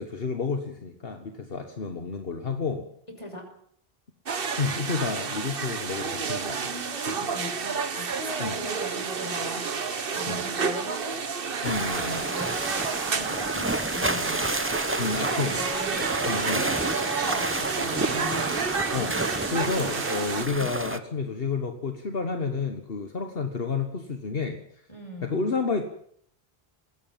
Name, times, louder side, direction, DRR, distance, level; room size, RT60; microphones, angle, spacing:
voice 1, 0.0-2.9 4.6-6.6 7.1-7.2 8.4-8.6 10.3-10.4 11.6-12.3 15.0-15.6 16.3-16.7 18.9-19.2 19.5-24.6 25.2-25.8, left 4 dB, 65° left, 6 dB, 1.6 m, -30 dB
sound 1, 4.3-20.4, right 5 dB, 65° right, 1.3 m, -30 dB
voice 2, 6.2-11.2 12.2-18.5 24.9-25.5, equal, 30° left, 3 dB, 6.1 m, -40 dB
sound 2, 11.6-21.0, right 2 dB, 15° right, 0.9 m, -30 dB
20.5 x 17.0 x 7.5 m, 0.63 s
omnidirectional pair, 1.0 m